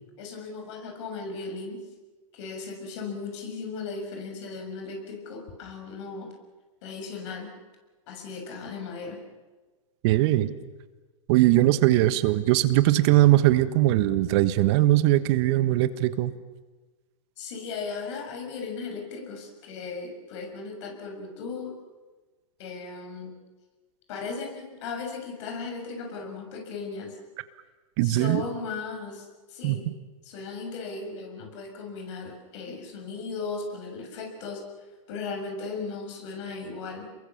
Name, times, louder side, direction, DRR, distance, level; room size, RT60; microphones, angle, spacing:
voice 1, 0.2-1.9 2.3-6.3 6.8-7.5 8.1-9.2 17.4-21.8 22.6-23.3 24.1-27.2 28.0-29.9 30.2-34.6 35.1-37.1, left 4 dB, 55° left, 4 dB, 7.1 m, -36 dB
voice 2, 10.0-10.6 11.3-16.3 28.0-28.4 29.6-29.8, right 15 dB, 50° right, 12 dB, 1.4 m, -20 dB
29.0 x 22.5 x 7.3 m, 1.3 s
hypercardioid pair, 115°, 18 cm